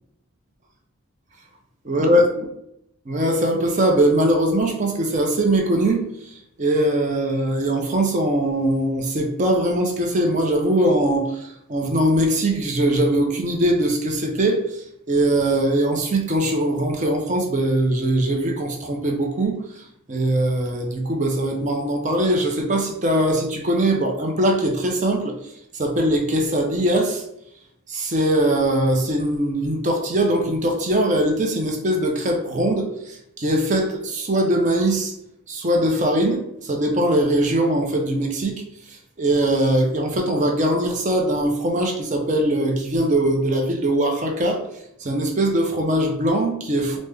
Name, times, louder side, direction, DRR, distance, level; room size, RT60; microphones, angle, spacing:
voice 1, 1.8-2.4 3.1-6.0 6.6-14.6 15.1-19.6 20.1-25.3 25.7-27.2 27.9-35.1 35.5-38.5 39.2-44.6 45.0-47.0, right 1 dB, 35° right, 2 dB, 0.5 m, -21 dB
3.4 x 2.0 x 3.2 m, 0.77 s
head